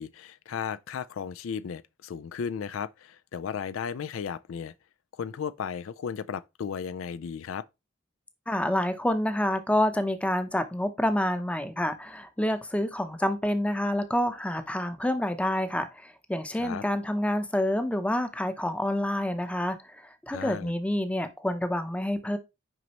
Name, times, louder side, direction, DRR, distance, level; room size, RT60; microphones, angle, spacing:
voice 1, 0.0-4.7 5.2-7.7 16.6-16.8 20.3-20.7, left 7 dB, 80° left, 0.4 m, -35 dB
voice 2, 8.5-22.4, left 1 dB, 5° left, 0.6 m, -28 dB
6.2 x 5.2 x 2.9 m
head